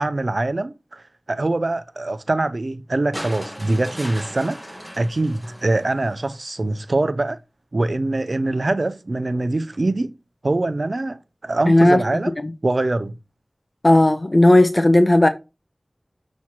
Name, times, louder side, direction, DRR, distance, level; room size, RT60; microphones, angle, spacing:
voice 1, 0.0-4.6 4.9-7.4 7.7-10.1 10.4-12.4 12.6-13.2, right 2 dB, 65° right, 0.5 m, -23 dB
sound 1, 3.1-6.4 7.8-7.9, equal, 5° right, 1.2 m, -37 dB
voice 2, 11.7-12.0 13.8-15.3, left 1 dB, 40° left, 0.7 m, -14 dB
7.2 x 3.1 x 5.8 m
wide cardioid pair, 45°, 0 cm